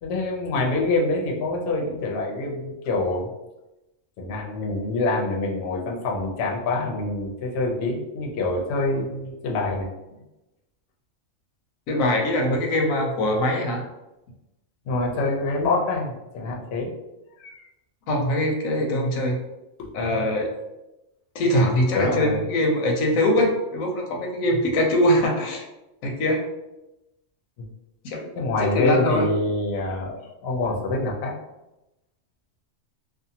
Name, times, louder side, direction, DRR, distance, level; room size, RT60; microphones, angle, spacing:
voice 1, 0.0-3.3 4.2-9.9 12.5-12.6 14.9-16.9 17.4-17.6 19.8-19.9 21.9-22.4 27.6-27.7 28.4-31.3, left 2 dB, 65° left, 0 dB, 0.8 m, -26 dB
voice 2, 11.9-13.8 18.1-19.4 19.9-20.5 21.3-25.7 26.0-26.4 28.0-28.3 28.6-29.3, left 1 dB, 90° left, 1 dB, 1.0 m, -22 dB
2.6 x 2.3 x 2.7 m, 0.96 s
omnidirectional pair, 1.4 m